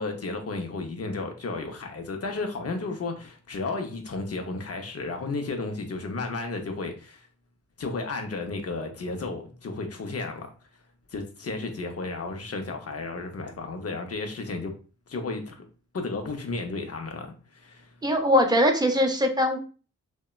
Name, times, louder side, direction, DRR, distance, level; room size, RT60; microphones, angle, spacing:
voice 1, 0.0-7.3 7.8-10.5 11.1-14.7 15.1-15.6 15.9-17.9, left 3 dB, 45° left, 4 dB, 0.7 m, -33 dB
voice 2, 18.0-19.6, equal, 10° right, 4 dB, 0.6 m, -21 dB
2.8 x 2.2 x 2.3 m, 0.37 s
supercardioid pair, 45°, 34 cm